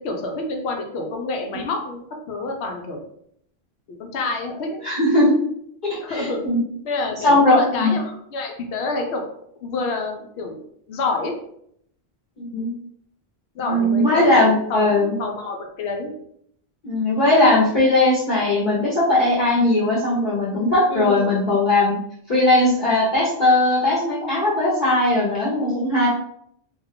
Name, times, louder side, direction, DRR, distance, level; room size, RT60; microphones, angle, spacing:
voice 1, 0.0-3.0 3.9-4.8 6.0-6.4 6.8-9.2 9.6-10.6 10.9-11.4 13.6-16.1 20.9-21.4, left 3 dB, 80° left, 2 dB, 0.9 m, -28 dB
voice 2, 4.8-5.3 5.8-6.6 7.2-8.0 12.4-12.7 13.6-15.2 16.8-22.0 22.3-26.1, left 2 dB, 50° left, -7 dB, 0.9 m, -19 dB
2.4 x 2.2 x 3.5 m, 0.69 s
omnidirectional pair, 1.1 m